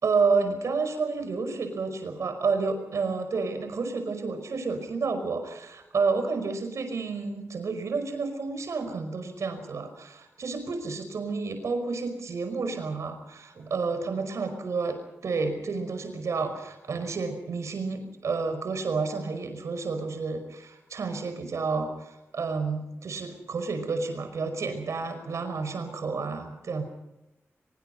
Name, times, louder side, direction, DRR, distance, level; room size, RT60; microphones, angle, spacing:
voice 1, 0.0-26.8, right 4 dB, 90° right, 7 dB, 5.4 m, -30 dB
24.5 x 23.5 x 5.5 m, 0.91 s
wide cardioid pair, 140°, 5 cm